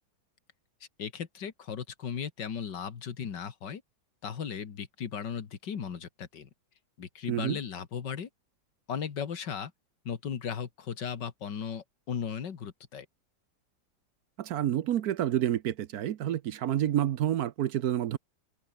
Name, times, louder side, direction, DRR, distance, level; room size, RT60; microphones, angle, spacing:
voice 1, 1.0-3.8 4.2-6.5 7.0-8.3 8.9-9.7 10.0-13.1, left 7 dB, 70° left, 2.4 m, -36 dB
voice 2, 7.3-7.6 14.4-18.2, right 11 dB, 65° right, 1.1 m, -29 dB
omnidirectional pair, 2.0 m